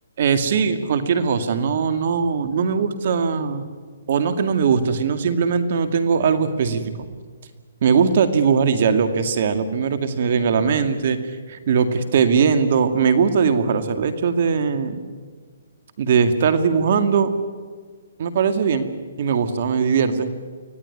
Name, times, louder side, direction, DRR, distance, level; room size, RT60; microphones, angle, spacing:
voice 1, 0.2-3.6 4.1-7.1 7.8-11.2 11.5-15.0 16.0-17.3 18.2-18.9 19.2-20.3, right 6 dB, 55° right, 9 dB, 2.1 m, -20 dB
24.5 x 16.5 x 9.7 m, 1.5 s
hypercardioid pair, 145°, 0 cm